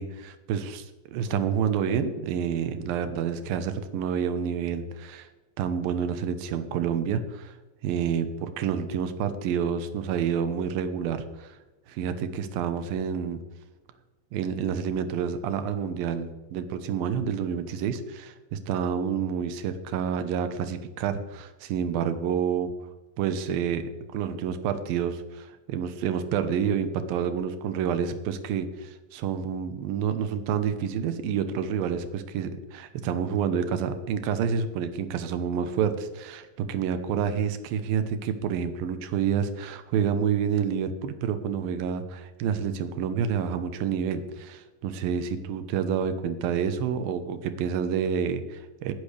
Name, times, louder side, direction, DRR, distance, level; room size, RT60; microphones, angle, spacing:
voice 1, 0.0-5.3 5.6-7.5 7.8-11.5 11.9-13.4 14.3-22.7 23.2-48.9, right 7 dB, 75° right, 9 dB, 2.7 m, -28 dB
19.0 x 10.0 x 3.4 m, 1.1 s
omnidirectional pair, 4.3 m